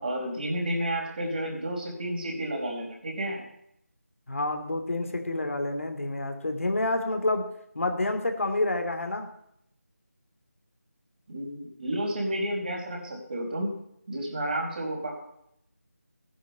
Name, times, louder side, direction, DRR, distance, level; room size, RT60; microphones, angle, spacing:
voice 1, 0.0-3.4 11.3-13.8 14.1-15.4, right 1 dB, 35° right, 0 dB, 4.6 m, -31 dB
voice 2, 4.3-7.4 7.7-9.3, left 2 dB, 60° left, 5 dB, 2.7 m, -28 dB
15.0 x 10.5 x 7.8 m, 0.75 s
figure-of-eight pair, 170°, 8 cm